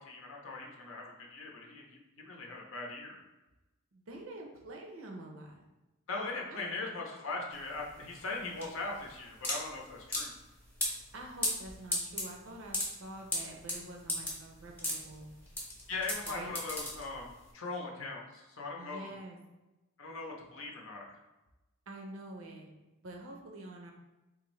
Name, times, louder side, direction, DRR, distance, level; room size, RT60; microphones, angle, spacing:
voice 1, 0.0-2.0 2.3-3.2 6.1-10.3 15.9-19.1 20.0-21.2, left 3 dB, 60° left, 0 dB, 0.6 m, -40 dB
voice 2, 3.9-5.6 6.5-6.6 11.1-15.3 16.3-16.6 18.8-19.4 21.9-22.7 23.0-23.9, right 1 dB, 65° right, 1 dB, 0.6 m, -46 dB
sound 1, 7.5-17.5, left 1 dB, 10° left, 0.7 m, -36 dB
3.7 x 2.6 x 3.1 m, 1.0 s
head